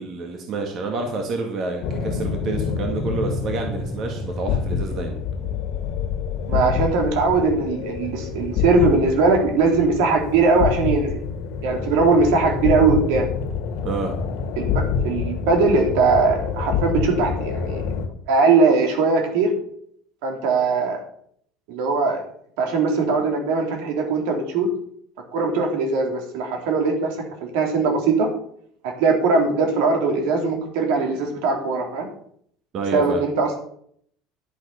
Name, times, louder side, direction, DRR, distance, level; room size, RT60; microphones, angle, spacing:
voice 1, 0.0-5.2 13.8-14.1 32.7-33.2, right 3 dB, 40° right, 3 dB, 1.9 m, -28 dB
sound 1, 1.8-18.1, left 6 dB, 60° left, 2.0 m, -27 dB
voice 2, 6.5-11.2 11.6-13.3 14.6-17.9 18.3-19.5 20.2-21.0 21.7-22.2 22.6-24.7 25.3-27.1 27.4-28.3 29.0-32.1 32.9-33.5, right 4 dB, 80° right, 3 dB, 3.6 m, -20 dB
11.0 x 7.9 x 5.7 m, 0.63 s
cardioid pair, 155°, 0 cm